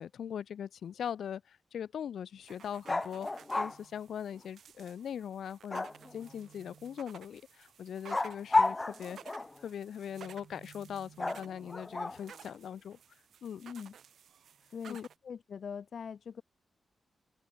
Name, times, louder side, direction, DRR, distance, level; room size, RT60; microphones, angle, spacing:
voice 1, 0.0-9.2 9.6-13.0 13.4-13.6 14.9-15.1, left 8 dB, 85° left, 4.8 m, -41 dB
sound 1, 2.4-15.1, right 8 dB, 75° right, 7.0 m, -55 dB
sound 2, 2.9-3.8 5.7-6.3 8.1-9.6 11.2-12.4, left 2 dB, 20° left, 3.4 m, -32 dB
voice 2, 13.6-13.9 14.7-16.4, left 7 dB, 55° left, 7.1 m, -42 dB
open air
wide cardioid pair, 150°, 0 cm